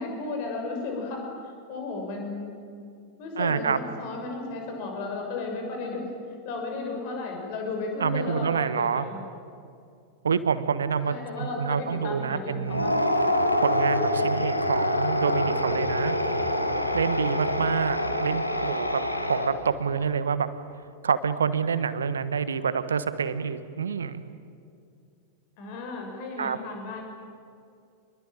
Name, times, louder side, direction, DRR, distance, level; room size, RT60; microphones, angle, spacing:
voice 1, 0.0-2.5 3.2-6.0 6.4-9.2 11.0-13.1 25.6-27.0, left 3 dB, 45° left, 2 dB, 6.6 m, -34 dB
voice 2, 3.4-3.8 8.0-9.0 10.2-12.9 13.6-16.2 16.9-19.0 19.3-19.5 19.8-20.5 21.0-24.2 26.4-26.6, right 6 dB, 70° right, 13 dB, 1.3 m, -27 dB
sound 1, 12.6-19.8, left 1 dB, 85° left, 1.8 m, -26 dB
26.5 x 21.5 x 9.0 m, 2.4 s
figure-of-eight pair, 90°, 0 cm